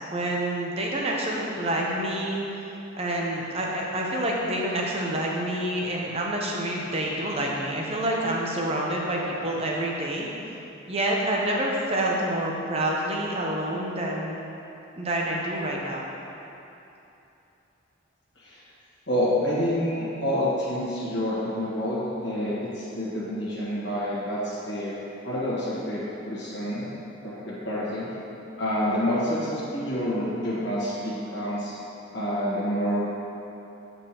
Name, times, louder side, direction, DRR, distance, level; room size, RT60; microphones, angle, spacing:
voice 1, 0.1-2.4 3.0-10.3 10.9-14.4 15.0-16.0, right 1 dB, 30° right, -2 dB, 0.7 m, -27 dB
voice 2, 19.1-24.9 25.2-26.9 27.2-28.1 28.6-31.7 32.1-33.0, equal, 55° left, -9 dB, 1.4 m, -28 dB
8.1 x 5.4 x 2.9 m, 2.9 s
head